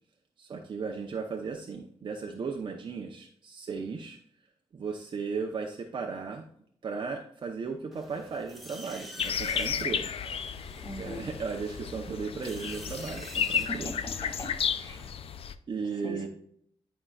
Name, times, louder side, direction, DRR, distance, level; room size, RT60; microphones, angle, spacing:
voice 1, 0.4-4.2 4.7-6.5 6.8-10.1 11.0-13.9 15.7-16.3, right 5 dB, 45° right, 2 dB, 0.8 m, -36 dB
sound 1, 7.9-15.1, right 1 dB, ahead, 1.6 m, -48 dB
Nightingale song, 9.2-15.5, left 7 dB, 60° left, 0.5 m, -33 dB
voice 2, 10.8-11.3 13.7-15.0 16.0-16.3, left 1 dB, 35° left, 0 dB, 2.1 m, -41 dB
11.5 x 5.6 x 2.4 m, 0.66 s
wide cardioid pair, 145°, 11 cm